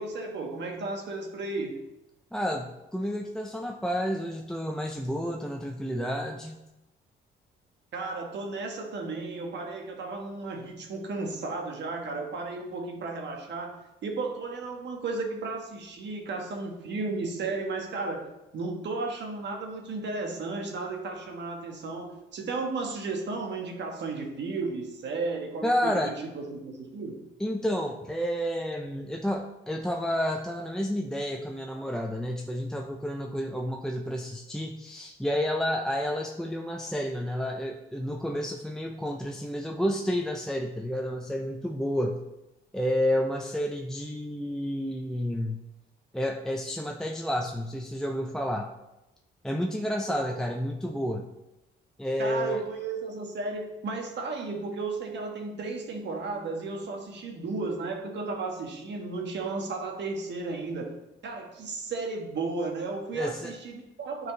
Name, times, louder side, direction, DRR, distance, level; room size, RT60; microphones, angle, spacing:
voice 1, 0.0-1.8 7.9-18.3 18.5-27.2 50.2-50.4 52.2-60.9 61.2-64.3, right 3 dB, 65° right, 2 dB, 1.4 m, -34 dB
voice 2, 2.3-6.6 25.6-26.2 27.4-42.2 42.7-45.6 46.1-48.7 49.4-51.3 52.0-52.6 63.1-63.6, equal, 5° left, 2 dB, 0.5 m, -30 dB
9.3 x 4.6 x 3.2 m, 0.96 s
cardioid pair, 90°, 20 cm